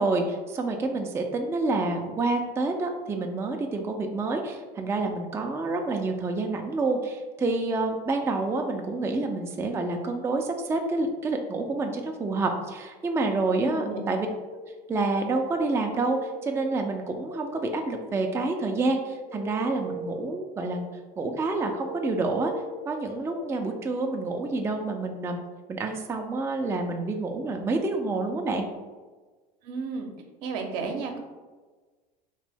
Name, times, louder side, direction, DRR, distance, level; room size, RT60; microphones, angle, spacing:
voice 1, 0.0-14.3 14.9-20.9 21.2-22.5 22.9-25.4 25.7-28.7, right 3 dB, 10° right, 3 dB, 0.4 m, -28 dB
voice 2, 13.6-14.0 29.6-30.1 30.4-31.2, right 4 dB, 65° right, 3 dB, 0.7 m, -32 dB
sound 1, 14.3-15.0 15.5-23.6, right 1 dB, 65° left, 1.0 m, -41 dB
3.0 x 2.5 x 3.4 m, 1.3 s
hypercardioid pair, 80°, 21 cm